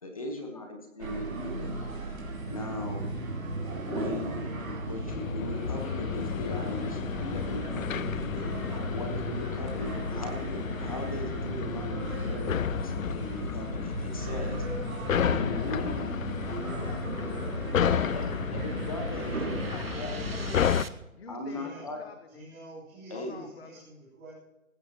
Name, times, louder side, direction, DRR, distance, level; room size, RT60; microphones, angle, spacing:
voice 1, 0.0-1.9 2.5-3.1 3.9-14.6 15.2-16.1 17.8-20.1 20.5-20.6 21.3-22.0 23.1-23.4, left 2 dB, 25° left, 4 dB, 1.3 m, -39 dB
sound 1, 1.0-20.8, right 2 dB, 70° right, 3.5 m, -35 dB
sound 2, 5.1-20.8, left 9 dB, 70° left, 0.5 m, -32 dB
sound 3, 14.8-20.9, right 4 dB, 45° right, 0.7 m, -48 dB
voice 2, 16.7-18.0 18.3-18.6 19.0-19.8 20.3-20.6 21.1-22.5 23.1-23.8, left 4 dB, 45° left, 8 dB, 0.9 m, -49 dB
voice 3, 21.4-22.0 22.3-24.3, right 1 dB, 10° right, -10 dB, 3.8 m, -48 dB
18.0 x 15.5 x 3.0 m, 0.99 s
hypercardioid pair, 175°, 43 cm